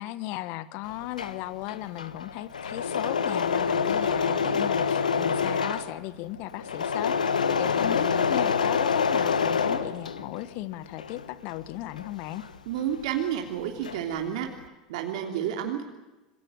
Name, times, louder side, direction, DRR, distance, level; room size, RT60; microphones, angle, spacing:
voice 1, 0.0-7.2 7.6-12.5, left 16 dB, 55° left, 15 dB, 1.4 m, -36 dB
Engine / Mechanisms, 0.9-10.5 10.9-13.2 13.5-14.2, left 6 dB, 85° left, 1.5 m, -27 dB
voice 2, 12.6-14.5 14.9-15.8, right 9 dB, 65° right, 3 dB, 3.2 m, -30 dB
27.0 x 22.0 x 9.0 m, 1.1 s
hypercardioid pair, 85°, 4 cm